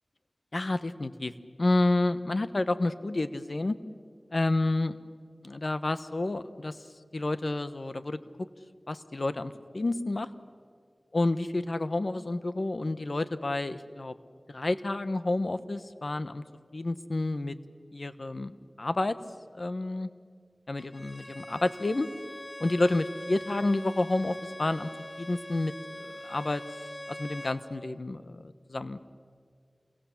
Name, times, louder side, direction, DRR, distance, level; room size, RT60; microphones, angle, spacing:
voice 1, 0.5-1.3 1.6-3.7 4.3-5.0 5.4-6.8 7.1-8.5 8.9-10.3 11.1-14.1 14.5-16.4 16.7-17.6 17.9-19.2 19.5-20.1 20.7-22.1 22.6-24.9 25.2-26.6 27.1-29.0, left 2 dB, 70° left, 12 dB, 1.1 m, -29 dB
Bowed string instrument, 20.8-27.6, left 1 dB, 35° left, 3.3 m, -43 dB
28.5 x 23.0 x 7.3 m, 2.1 s
wide cardioid pair, 40°, 0 cm